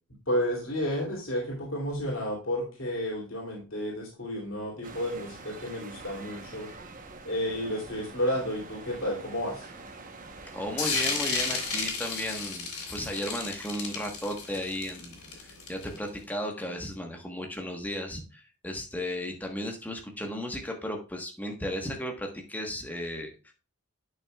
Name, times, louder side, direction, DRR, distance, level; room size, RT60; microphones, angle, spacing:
voice 1, 0.3-6.7 7.2-9.7, equal, 65° left, -3 dB, 2.9 m, -31 dB
sound 1, 4.8-11.9, right 3 dB, 40° right, 1.0 m, -45 dB
voice 2, 10.5-23.5, equal, 5° left, 2 dB, 1.2 m, -35 dB
sound 2, 10.8-16.1, left 4 dB, 85° left, 2.8 m, -32 dB
10.5 x 6.2 x 2.3 m, 0.35 s
head